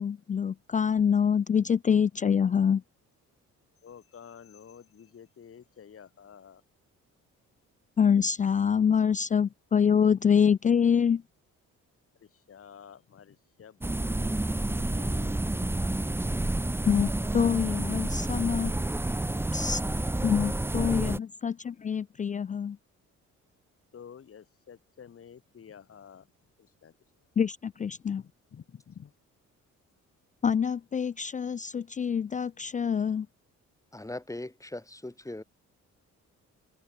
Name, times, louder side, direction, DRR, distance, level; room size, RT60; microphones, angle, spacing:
voice 1, 0.0-2.8 8.0-11.2 16.9-18.7 19.5-19.8 20.2-22.8 27.4-28.2 30.4-33.3, left 7 dB, 25° left, 0.4 m, -25 dB
voice 2, 3.8-6.6 12.2-15.5 20.4-20.5 20.8-21.1 23.9-26.3 26.6-26.9 27.9-29.1, left 7 dB, 50° left, 2.7 m, -50 dB
sound 1, 13.8-21.2, right 2 dB, 10° right, 0.8 m, -29 dB
voice 3, 33.9-35.4, left 2 dB, 10° left, 4.4 m, -39 dB
cardioid pair, 90°, 30 cm